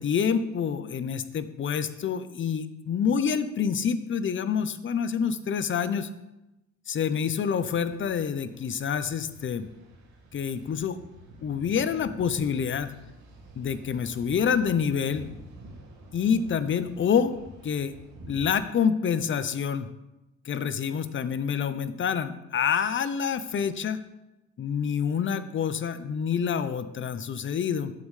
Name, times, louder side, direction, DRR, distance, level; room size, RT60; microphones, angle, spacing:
voice 1, 0.0-6.1 6.9-9.7 10.3-11.0 11.4-12.9 13.6-15.3 16.1-17.4 17.6-17.9 18.3-19.9 20.4-24.0 24.6-27.9, left 7 dB, 40° left, 13 dB, 0.6 m, -27 dB
sound 1, 7.5-18.5, right 1 dB, 75° right, 2.3 m, -48 dB
8.3 x 7.2 x 3.2 m, 0.97 s
cardioid pair, 90°, 30 cm